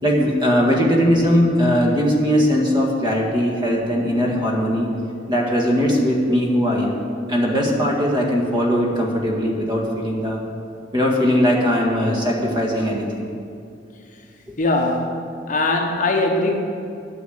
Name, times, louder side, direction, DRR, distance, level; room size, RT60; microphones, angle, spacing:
voice 1, 0.0-4.9 5.3-7.0 7.3-10.4 10.9-13.3, equal, 25° right, -1 dB, 1.8 m, -19 dB
voice 2, 14.6-16.5, left 2 dB, 45° left, 2 dB, 1.0 m, -21 dB
9.5 x 6.7 x 8.6 m, 2.6 s
head